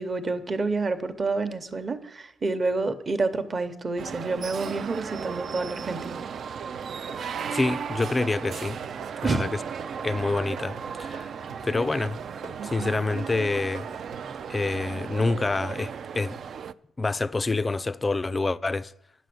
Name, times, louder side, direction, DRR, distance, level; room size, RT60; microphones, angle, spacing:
voice 1, 0.0-6.2 9.2-9.5, right 3 dB, 35° right, 0.9 m, -28 dB
sound 1, 4.0-16.7, right 7 dB, 55° right, 0.3 m, -35 dB
sound 2, 6.7-14.4, right 4 dB, 85° right, 1.0 m, -45 dB
voice 2, 7.2-8.8 9.2-9.6 10.0-11.3 11.6-12.2 12.6-13.9 14.5-16.4 17.0-18.9, left 3 dB, 25° left, 0.3 m, -27 dB
9.1 x 6.0 x 7.7 m
cardioid pair, 90°, 0 cm